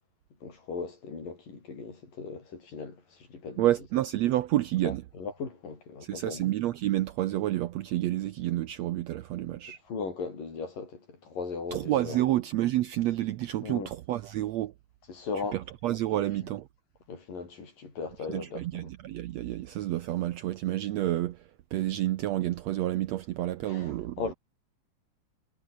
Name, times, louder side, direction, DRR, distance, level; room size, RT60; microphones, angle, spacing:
voice 1, 0.4-3.7 4.8-6.5 9.9-12.2 13.6-13.9 15.1-15.6 16.1-16.3 17.1-18.9 23.7-24.3, left 4 dB, 70° left, 7.8 m, -38 dB
voice 2, 3.6-5.0 6.0-9.8 11.7-14.7 15.5-16.7 18.3-24.2, right 14 dB, 85° right, 1.5 m, -29 dB
omnidirectional pair, 4.1 m